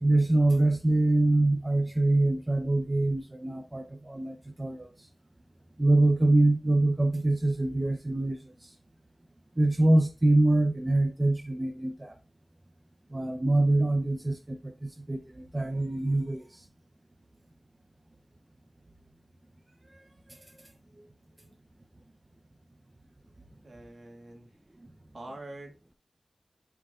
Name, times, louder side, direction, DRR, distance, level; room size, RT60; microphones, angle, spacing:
voice 1, 0.0-4.9 5.8-8.7 9.6-12.1 13.1-16.6, right 2 dB, 25° right, 0.7 m, -25 dB
voice 2, 23.6-24.5 25.1-25.9, right 1 dB, 60° right, 1.9 m, -45 dB
9.6 x 4.6 x 2.4 m
wide cardioid pair, 70°, 0 cm